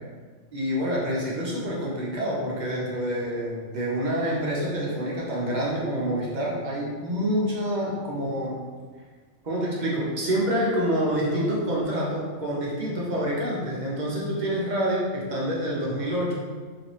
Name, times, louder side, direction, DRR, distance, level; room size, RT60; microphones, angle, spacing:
voice 1, 0.5-8.6 9.4-16.3, equal, 45° right, -5 dB, 0.6 m, -27 dB
3.3 x 3.1 x 2.8 m, 1.5 s
omnidirectional pair, 1.4 m